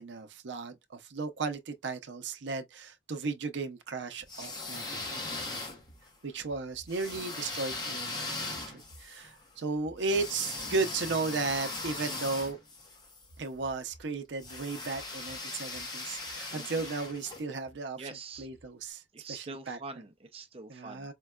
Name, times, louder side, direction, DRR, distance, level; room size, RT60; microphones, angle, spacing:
voice 1, 0.0-5.2 5.5-5.7 6.2-12.6 13.4-18.0 18.4-19.0 19.3-19.8 20.7-21.1, right 3 dB, 80° right, 0.5 m, -35 dB
sound 1, 4.2-6.1 6.9-13.3 14.4-17.4, left 2 dB, 20° left, 0.7 m, -39 dB
sound 2, 5.0-7.2 7.5-7.8 8.5-9.3 9.7-12.7 13.2-14.1 14.4-15.4 15.7-16.4 16.7-17.2 17.6-17.8 18.3-18.9, right 1 dB, 80° left, 2.4 m, -57 dB
voice 2, 18.0-18.5 19.1-21.1, right 3 dB, 30° right, 0.5 m, -45 dB
4.4 x 2.1 x 2.3 m
head